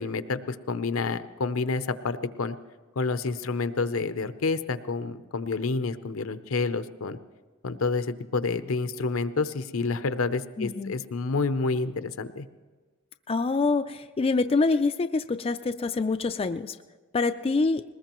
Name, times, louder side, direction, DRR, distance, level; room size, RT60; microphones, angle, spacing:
voice 1, 0.0-2.6 3.0-7.2 7.6-8.1 8.3-12.5, left 4 dB, 70° left, 11 dB, 0.7 m, -29 dB
voice 2, 10.6-10.9 13.3-16.8 17.1-17.8, left 3 dB, 30° left, 8 dB, 0.4 m, -25 dB
21.0 x 19.5 x 3.0 m, 1.4 s
head